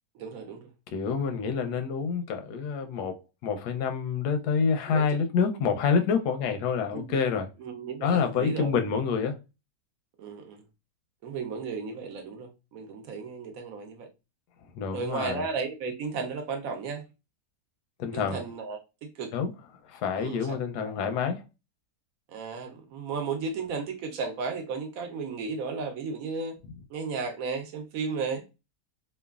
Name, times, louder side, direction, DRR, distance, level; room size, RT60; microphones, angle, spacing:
voice 1, 0.1-0.7 4.9-5.2 6.9-7.2 7.6-8.7 10.2-10.6 11.2-14.1 14.9-17.1 18.1-19.3 20.2-20.6 20.8-20.9 22.3-26.5 26.9-28.4, right 5 dB, 70° right, 1.0 m, -34 dB
voice 2, 0.9-7.5 8.0-9.4 14.8-15.4 18.0-18.4 19.3-19.5 19.9-21.4, left 6 dB, 90° left, 1.2 m, -27 dB
3.0 x 2.2 x 2.3 m
omnidirectional pair, 1.6 m